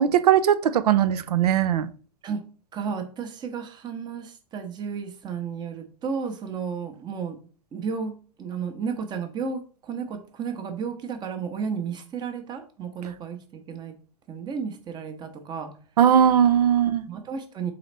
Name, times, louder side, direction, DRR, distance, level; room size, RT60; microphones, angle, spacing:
voice 1, 0.0-1.9 16.0-17.0, right 9 dB, 75° right, 12 dB, 0.6 m, -19 dB
voice 2, 2.7-7.4 7.7-14.0 14.3-15.7 17.1-17.7, right 6 dB, 20° right, 6 dB, 0.8 m, -33 dB
3.9 x 3.9 x 3.3 m, 0.41 s
hypercardioid pair, 125°, 20 cm